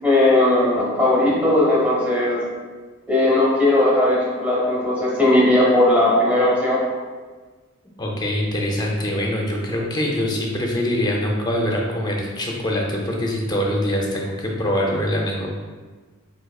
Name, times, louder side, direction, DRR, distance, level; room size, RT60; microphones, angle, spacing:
voice 1, 0.0-2.4 3.1-6.8, left 1 dB, 5° right, -7 dB, 0.9 m, -17 dB
voice 2, 8.0-15.5, left 1 dB, 20° left, -1 dB, 0.5 m, -23 dB
4.4 x 2.7 x 2.3 m, 1.4 s
head